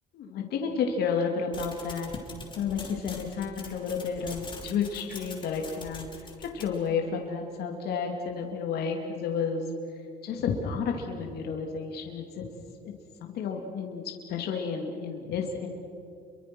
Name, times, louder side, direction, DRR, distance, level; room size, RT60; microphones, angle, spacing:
voice 1, 0.1-2.2 2.6-9.7 9.9-12.4 13.2-15.7, left 6 dB, 70° left, 2 dB, 2.6 m, -31 dB
sound 1, 1.5-6.9, left 3 dB, 25° left, 5.8 m, -43 dB
29.5 x 24.0 x 6.2 m, 2.8 s
cardioid pair, 110°, 17 cm